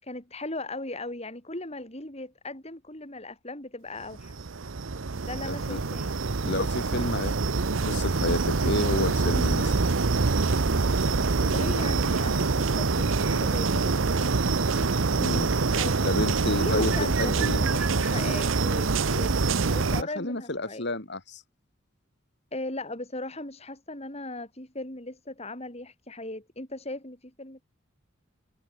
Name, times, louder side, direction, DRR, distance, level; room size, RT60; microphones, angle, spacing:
voice 1, 0.0-4.3 5.3-6.1 11.4-15.2 15.8-16.1 16.6-20.9 22.5-27.6, left 2 dB, 30° left, 7.2 m, -38 dB
sound 1, 4.1-20.0, right 4 dB, 75° right, 0.9 m, -25 dB
voice 2, 5.4-5.8 6.4-7.4 7.8-9.9 15.2-15.5 16.0-17.6 20.0-21.4, left 2 dB, 60° left, 3.6 m, -30 dB
head